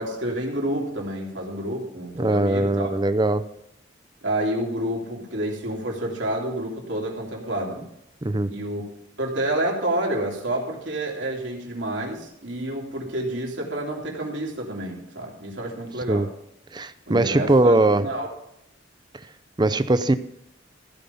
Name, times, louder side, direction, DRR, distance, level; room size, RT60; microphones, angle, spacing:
voice 1, 0.0-2.9 4.2-7.9 8.5-8.8 9.2-16.3 17.1-18.3, right 1 dB, 80° right, -1 dB, 3.2 m, -29 dB
voice 2, 2.1-3.4 8.2-8.5 16.1-16.3 16.7-18.0 19.6-20.1, right 2 dB, 25° right, 13 dB, 0.5 m, -20 dB
15.5 x 5.4 x 7.0 m, 0.78 s
head